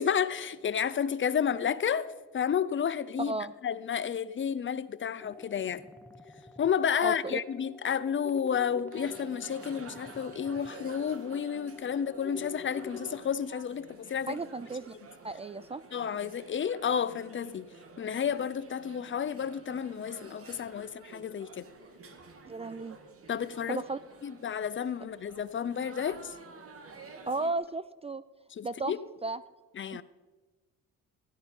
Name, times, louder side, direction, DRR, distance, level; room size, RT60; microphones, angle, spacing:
voice 1, 0.0-3.3 3.6-5.8 6.6-14.4 15.9-17.7 18.0-21.7 23.3-23.8 24.2-26.3 28.6-29.0 29.8-30.0, left 8 dB, 35° left, 0.7 m, -31 dB
voice 2, 3.2-3.5 7.0-7.4 14.3-14.9 15.2-15.8 22.5-23.0 23.7-24.0 27.3-28.2 28.6-28.9 29.2-29.4 29.9-30.0, right 3 dB, 20° right, 0.4 m, -34 dB
sound 1, 5.2-13.2, left 4 dB, 5° left, 1.1 m, -47 dB
sound 2, 8.9-27.5, right 4 dB, 45° right, 1.8 m, -51 dB
16.0 x 11.5 x 5.4 m
cardioid pair, 90°, 32 cm